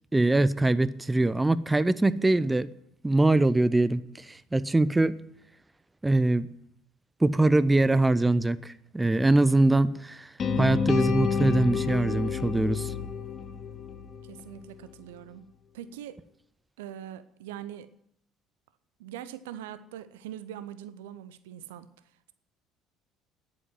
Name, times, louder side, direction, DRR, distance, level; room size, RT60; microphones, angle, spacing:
voice 1, 0.1-2.7 3.0-5.2 6.0-6.5 7.2-10.3 10.6-12.9, right 2 dB, 10° right, 0.6 m, -23 dB
sound 1, 10.4-14.5, left 6 dB, 35° left, 1.3 m, -29 dB
voice 2, 14.2-15.5 15.7-16.2 16.8-17.9 19.0-21.9, right 10 dB, 65° right, 0.7 m, -42 dB
10.5 x 8.6 x 9.4 m
figure-of-eight pair, 60°, 0 cm